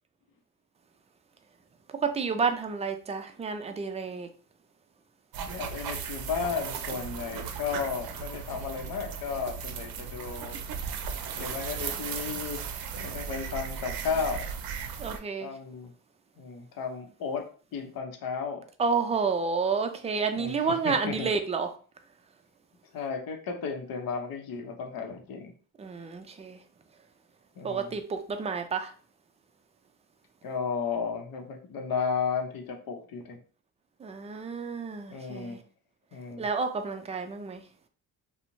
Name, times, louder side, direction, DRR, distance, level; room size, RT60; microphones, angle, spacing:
voice 1, 2.0-4.3 15.0-15.5 18.8-21.7 25.8-26.6 27.6-28.9 34.0-35.6 36.4-37.6, right 5 dB, 20° right, 0.3 m, -30 dB
sound 1, 5.3-15.2, right 7 dB, 70° right, 0.5 m, -36 dB
voice 2, 5.5-10.6 11.4-12.6 12.9-14.5 15.4-15.9 16.4-18.6 20.4-21.3 22.9-25.5 27.6-28.0 30.4-33.4 35.1-35.6 36.1-36.5, left 5 dB, 65° left, 0.7 m, -34 dB
2.5 x 2.1 x 2.9 m
cardioid pair, 85°, 37 cm